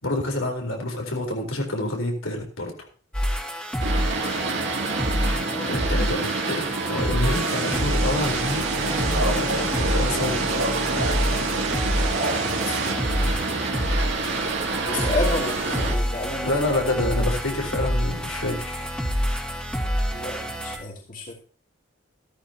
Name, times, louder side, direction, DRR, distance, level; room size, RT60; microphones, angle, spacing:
voice 1, 0.0-2.7 5.7-10.6 16.4-18.9, left 1 dB, 80° left, 1 dB, 4.1 m, -28 dB
sound 1, 3.1-20.8, equal, 5° left, 2.2 m, -27 dB
Boat Water vehicle, 3.8-16.0, right 3 dB, 55° right, 2.6 m, -28 dB
voice 2, 5.5-6.2 12.4-13.5 14.8-16.7 20.1-21.3, left 2 dB, 40° left, -1 dB, 2.7 m, -32 dB
sound 2, 7.3-12.9, right 3 dB, 85° right, 2.3 m, -30 dB
15.0 x 13.0 x 2.9 m, 0.35 s
head